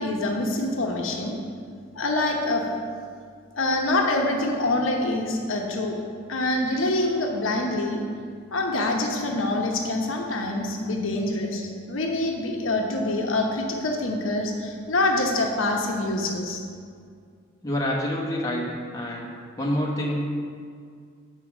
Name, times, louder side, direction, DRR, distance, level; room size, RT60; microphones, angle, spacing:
voice 1, 0.0-1.4 1.9-2.6 3.6-6.0 6.3-8.0 8.5-16.6, left 2 dB, 75° left, 1 dB, 1.0 m, -25 dB
voice 2, 17.6-18.7 18.9-20.2, equal, 15° left, -3 dB, 1.1 m, -27 dB
7.8 x 4.9 x 6.0 m, 2.1 s
head